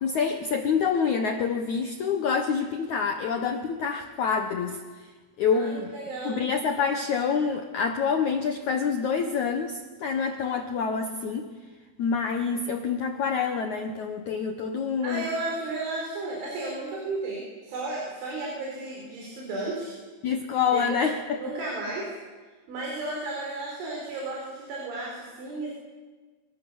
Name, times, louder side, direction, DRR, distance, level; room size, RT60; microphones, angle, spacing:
voice 1, 0.0-4.8 5.4-5.9 6.2-11.5 12.0-15.3 20.2-21.2, left 6 dB, 85° left, 5 dB, 1.6 m, -27 dB
voice 2, 5.5-6.5 15.0-20.0 20.7-20.8 21.4-22.1 22.7-25.7, right 2 dB, 80° right, -2 dB, 7.1 m, -33 dB
26.5 x 24.0 x 7.1 m, 1.4 s
omnidirectional pair, 5.4 m